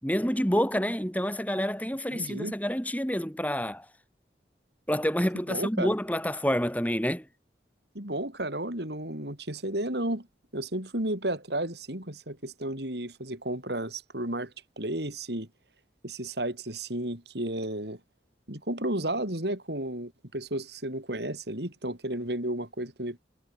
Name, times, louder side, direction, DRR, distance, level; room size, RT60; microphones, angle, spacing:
voice 1, 0.0-3.9 4.9-7.3, equal, 10° left, 6.1 m, -28 dB
voice 2, 2.1-2.5 5.5-5.9 8.0-10.3 10.5-15.5 16.0-18.0 18.5-23.2, right 1 dB, 70° right, 6.9 m, -33 dB
head